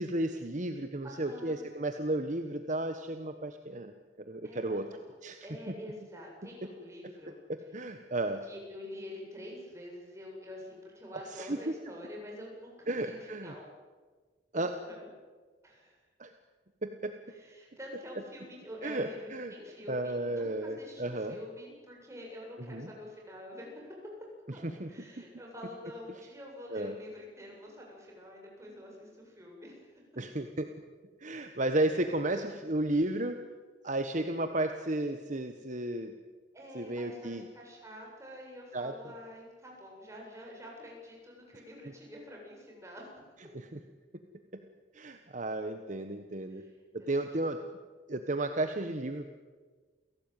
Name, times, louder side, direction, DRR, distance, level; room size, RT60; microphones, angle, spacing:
voice 1, 0.0-3.9 4.2-4.9 5.2-5.4 7.5-8.4 11.3-11.7 12.9-13.5 14.5-14.7 16.2-16.3 16.8-17.1 18.8-19.5 19.9-21.4 22.6-22.9 24.6-24.9 26.7-26.9 30.2-30.7 31.2-33.4 33.8-36.1 36.7-37.4 38.7-38.9 43.5-43.8 44.5-44.6 44.9-46.6 46.9-47.6 48.1-49.3, right 1 dB, 45° right, 7 dB, 1.3 m, -33 dB
voice 2, 1.0-1.7 4.4-4.8 5.1-5.2 5.4-7.4 8.4-13.7 14.5-15.1 15.6-15.9 17.3-24.0 24.5-24.6 24.9-29.9 36.5-43.2 46.5-46.7 47.0-47.1, left 1 dB, 15° right, -1 dB, 7.7 m, -47 dB
29.0 x 17.5 x 9.2 m, 1.4 s
head